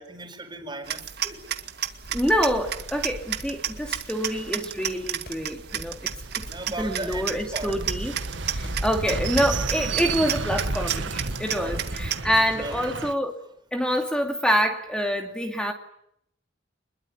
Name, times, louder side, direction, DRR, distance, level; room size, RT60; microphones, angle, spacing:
voice 1, 0.0-1.5 2.2-2.3 6.5-7.8 11.6-11.8 12.3-12.9, right 2 dB, 25° right, 6 dB, 4.7 m, -37 dB
sound 1, 0.9-12.2, right 10 dB, 55° right, 1.9 m, -33 dB
sound 2, 2.0-13.1, right 3 dB, 75° right, 1.7 m, -33 dB
voice 2, 2.1-6.1 6.4-6.5 6.8-8.1 8.5-13.3 13.7-15.7, equal, 5° left, 4 dB, 2.4 m, -26 dB
sound 3, 3.4-3.7 5.3-9.6 10.3-10.8 11.1-11.2 11.5-12.1 12.7-12.8, left 1 dB, 55° left, 6.0 m, -43 dB
26.5 x 21.5 x 9.6 m, 0.72 s
head